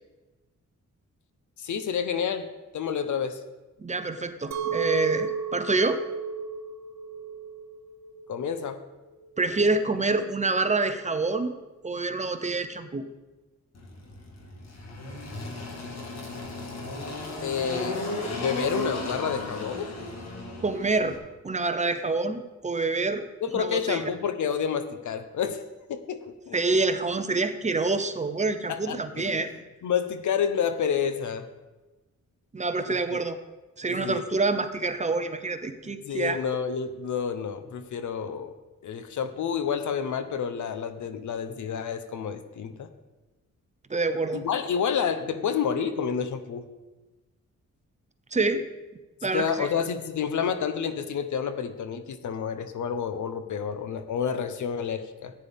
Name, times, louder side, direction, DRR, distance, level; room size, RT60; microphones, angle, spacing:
voice 1, 1.6-3.4 8.3-8.8 17.4-19.9 23.4-25.6 25.9-26.6 28.7-31.5 32.8-33.2 33.9-34.2 35.8-38.5 38.8-42.9 44.3-46.7 49.2-55.3, left 7 dB, 80° left, 9 dB, 0.9 m, -29 dB
voice 2, 3.8-6.0 9.4-11.5 11.8-13.1 20.6-21.2 21.4-23.2 23.5-24.0 26.5-29.5 32.5-33.4 33.8-36.4 43.9-44.4 48.3-48.7 49.2-49.7, right 3 dB, 25° right, 9 dB, 0.7 m, -27 dB
Chink clink, 4.5-9.7, right 7 dB, 65° right, 0.9 m, -34 dB
Engine, 13.7-21.2, left 2 dB, 60° left, 1.9 m, -35 dB
14.0 x 9.2 x 3.5 m, 1.1 s
wide cardioid pair, 110°, 30 cm